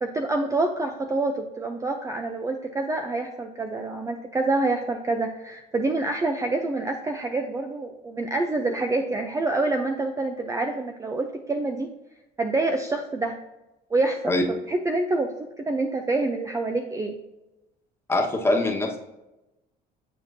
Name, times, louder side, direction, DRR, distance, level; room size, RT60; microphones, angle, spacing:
voice 1, 0.0-11.9 12.4-13.4 13.9-14.3 14.7-15.3 15.7-17.1, right 2 dB, 20° right, 4 dB, 0.6 m, -26 dB
voice 2, 18.1-19.0, left 2 dB, 15° left, 0 dB, 1.4 m, -23 dB
9.0 x 4.3 x 2.7 m, 0.97 s
cardioid pair, 110°, 17 cm